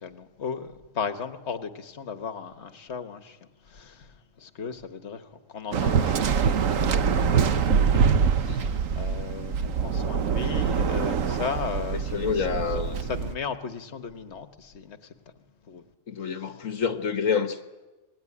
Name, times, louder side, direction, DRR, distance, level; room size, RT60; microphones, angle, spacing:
voice 1, 0.0-3.4 3.7-4.0 4.4-5.2 5.5-6.4 6.8-15.0 15.7-15.8, left 6 dB, 60° left, 1.7 m, -36 dB
Waves surf, 5.7-13.3, right 6 dB, 85° right, 1.5 m, -24 dB
voice 2, 11.9-13.1 16.1-17.6, left 6 dB, 80° left, 1.6 m, -28 dB
26.5 x 20.5 x 9.9 m
omnidirectional pair, 1.3 m